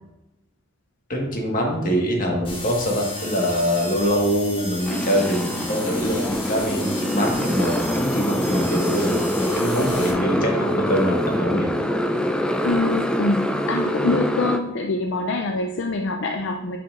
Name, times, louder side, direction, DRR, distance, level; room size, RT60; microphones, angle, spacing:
voice 1, 1.1-11.7, equal, 45° left, 0 dB, 1.5 m, -23 dB
sound 1, 2.4-10.1, left 2 dB, 25° left, 1.4 m, -34 dB
Motorcycle, 4.9-14.6, equal, 5° left, 0.3 m, -25 dB
voice 2, 12.6-16.8, left 3 dB, 65° left, 3 dB, 0.5 m, -25 dB
9.4 x 5.7 x 2.5 m, 0.94 s
head